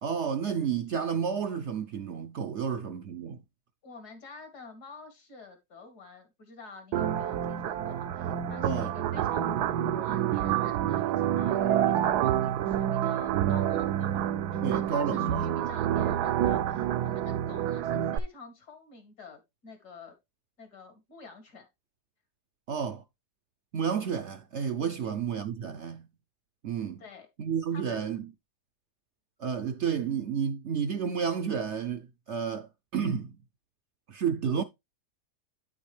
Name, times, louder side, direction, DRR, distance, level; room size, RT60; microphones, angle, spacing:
voice 1, 0.0-3.4 8.6-8.9 14.6-15.5 22.7-23.0 23.7-26.1 26.6-27.0 27.4-28.3 29.4-33.4 34.1-34.6, right 7 dB, 65° right, 0.7 m, -31 dB
voice 2, 3.8-20.1 20.6-21.7 24.9-25.3 27.0-27.3 27.7-28.0, left 3 dB, 75° left, 2.6 m, -48 dB
sound 1, 6.9-18.2, right 11 dB, 85° right, 1.2 m, -28 dB
9.5 x 6.2 x 3.2 m
omnidirectional pair, 1.7 m